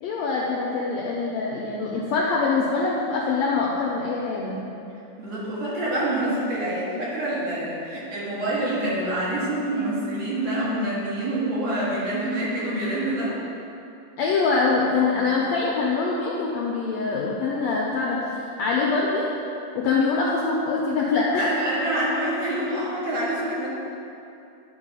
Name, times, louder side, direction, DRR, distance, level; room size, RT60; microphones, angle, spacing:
voice 1, 0.0-4.6 14.2-19.3 19.7-21.6, left 4 dB, 80° left, -4 dB, 1.6 m, -24 dB
voice 2, 5.2-13.4 21.4-23.7, right 1 dB, 55° right, -10 dB, 3.0 m, -26 dB
10.5 x 3.5 x 5.5 m, 2.7 s
omnidirectional pair, 3.7 m